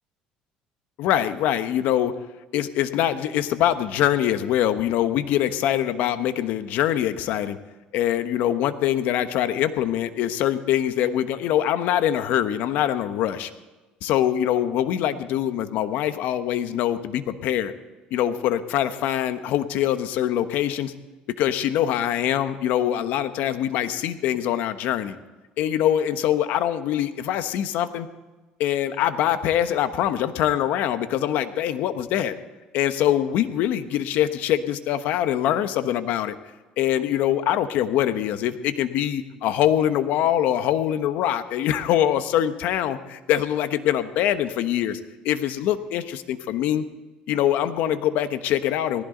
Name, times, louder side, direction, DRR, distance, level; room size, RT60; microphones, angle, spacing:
voice 1, 1.0-2.1 2.5-7.6 7.9-13.5 14.0-17.7 18.1-20.9 21.4-25.2 25.6-28.1 28.6-32.3 32.7-36.4 36.8-45.0 45.2-46.8 47.3-49.0, left 11 dB, 75° left, 10 dB, 1.1 m, -23 dB
18.5 x 15.5 x 3.9 m, 1.1 s
cardioid pair, 100°, 3 cm